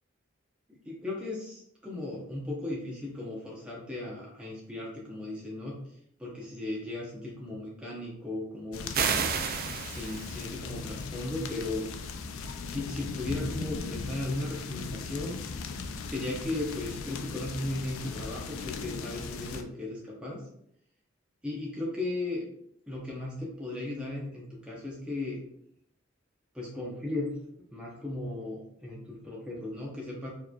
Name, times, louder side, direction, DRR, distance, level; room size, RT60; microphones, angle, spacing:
voice 1, 0.7-5.7 6.2-9.3 9.9-11.9 12.6-15.4 16.0-20.4 21.4-22.4 22.9-25.4 26.5-27.3 27.7-30.3, left 2 dB, 5° right, -5 dB, 0.7 m, -36 dB
sound 1, 8.7-19.6, left 4 dB, 85° left, 0.4 m, -38 dB
sound 2, 8.9-10.5, right 7 dB, 50° right, 0.3 m, -30 dB
4.5 x 3.0 x 2.3 m, 0.72 s
head